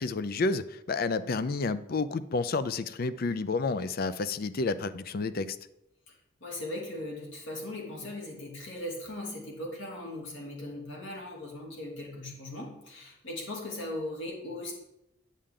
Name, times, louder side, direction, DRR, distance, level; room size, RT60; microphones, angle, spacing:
voice 1, 0.0-5.6, left 3 dB, 45° left, 14 dB, 0.4 m, -30 dB
voice 2, 6.4-14.7, left 1 dB, 65° left, -2 dB, 2.7 m, -38 dB
8.7 x 8.3 x 3.7 m, 0.84 s
head